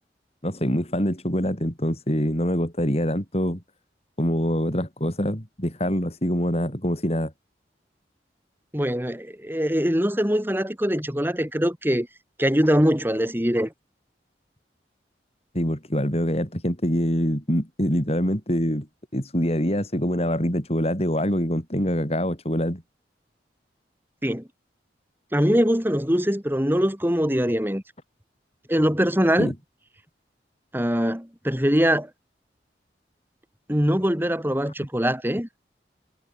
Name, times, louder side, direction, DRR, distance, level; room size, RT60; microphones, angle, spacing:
voice 1, 0.4-3.6 4.2-7.3 15.5-18.9 19.1-22.8 29.4-29.5, equal, 35° left, 6.8 m, -25 dB
voice 2, 8.7-12.1 12.4-13.7 24.2-24.5 25.3-27.8 28.7-29.5 30.7-32.1 33.7-35.5, equal, 10° right, 5.6 m, -22 dB
head